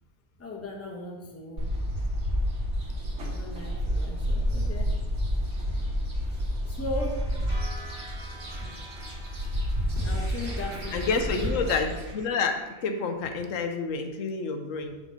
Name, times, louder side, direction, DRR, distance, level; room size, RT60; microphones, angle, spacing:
voice 1, 0.4-1.7 3.2-4.9 6.3-7.2 10.0-11.8, left 2 dB, 15° left, -1 dB, 0.8 m, -38 dB
sound 1, 1.6-12.1, equal, 70° right, 1.7 m, -30 dB
sound 2, 6.9-13.1, right 1 dB, 20° right, 1.8 m, -40 dB
voice 2, 10.9-12.6 12.8-15.0, left 4 dB, 85° left, 6 dB, 1.1 m, -28 dB
6.3 x 3.8 x 5.1 m, 1.1 s
omnidirectional pair, 1.3 m